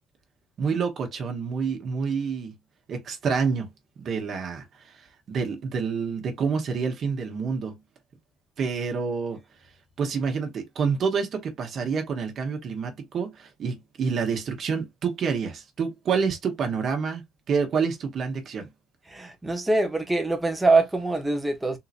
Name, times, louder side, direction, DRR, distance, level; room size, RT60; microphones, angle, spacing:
voice 1, 0.6-2.6 2.9-3.7 4.0-7.8 8.6-9.4 10.0-18.7, right 5 dB, 50° right, 1.1 m, -28 dB
voice 2, 19.1-21.8, right 3 dB, 10° right, 0.9 m, -23 dB
3.8 x 2.8 x 2.5 m
cardioid pair, 115°, 0 cm